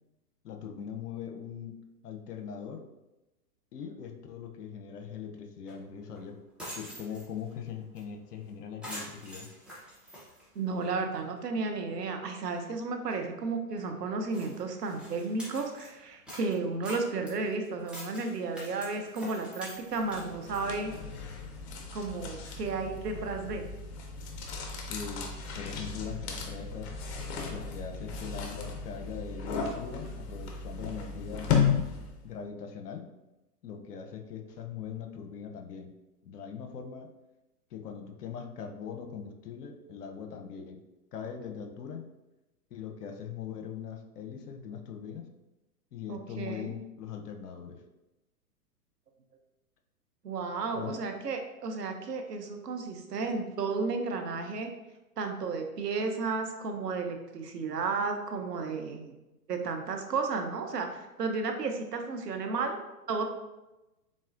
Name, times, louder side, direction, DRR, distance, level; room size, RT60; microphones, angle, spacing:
voice 1, 0.4-1.8 2.0-2.9 3.7-6.4 6.7-9.5 24.9-25.3 25.6-26.9 27.5-31.5 32.2-33.1 33.6-35.9 36.2-37.1 37.7-40.8 41.1-42.1 42.7-45.3 45.9-47.8 50.7-51.0, left 7 dB, 75° left, 5 dB, 0.8 m, -41 dB
sound 1, 5.7-5.8 6.1-6.2 6.5-7.5 8.0-8.1 8.3-8.5 8.8-11.0 11.4-11.5 12.0-12.1 12.4-12.6 13.1-13.2 13.8-13.9 14.3-15.9 16.3-20.6, equal, ahead, 0.8 m, -45 dB
voice 2, 10.5-20.9 21.9-23.6 46.1-46.7 50.2-54.7 55.2-59.1 59.5-62.8 63.1-63.2, right 4 dB, 90° right, 4 dB, 0.8 m, -33 dB
sound 2, 19.9-32.3, left 6 dB, 45° left, 0.8 m, -35 dB
4.1 x 3.7 x 2.5 m, 1.0 s
hypercardioid pair, 125°, 47 cm